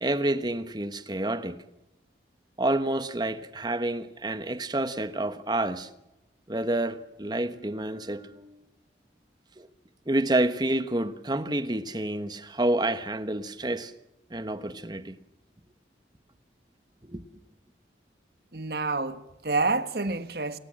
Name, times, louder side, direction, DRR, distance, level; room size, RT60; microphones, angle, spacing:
voice 1, 0.0-1.6 2.6-5.9 6.5-8.6 9.6-9.7 10.1-13.9 14.3-15.2 17.0-17.2, right 1 dB, 25° right, 1.2 m, -29 dB
voice 2, 18.5-20.6, right 3 dB, 60° right, 1.4 m, -28 dB
28.5 x 15.5 x 7.6 m
head